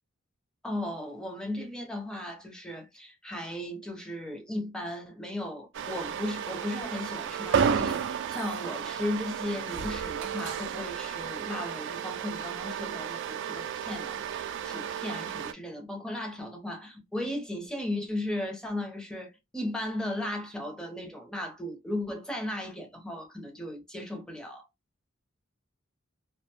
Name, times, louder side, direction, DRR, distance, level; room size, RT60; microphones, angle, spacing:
voice 1, 0.6-24.6, left 1 dB, 5° left, 0.7 m, -36 dB
sound 1, 5.7-15.5, right 7 dB, 60° right, 0.3 m, -32 dB
2.5 x 2.1 x 2.8 m
head